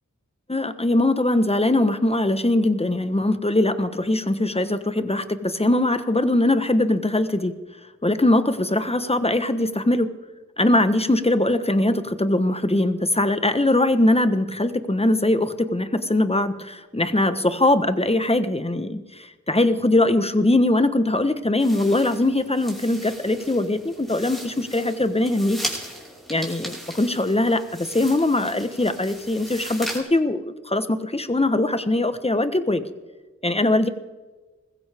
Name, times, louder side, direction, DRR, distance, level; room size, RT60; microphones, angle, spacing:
voice 1, 0.5-7.6 8.0-10.1 10.6-25.6 26.3-32.8 33.4-33.9, left 1 dB, 20° left, 10 dB, 1.2 m, -21 dB
sound 1, 21.6-30.0, equal, ahead, 5.0 m, -37 dB
20.5 x 15.5 x 3.6 m, 1.2 s
wide cardioid pair, 40°, 29 cm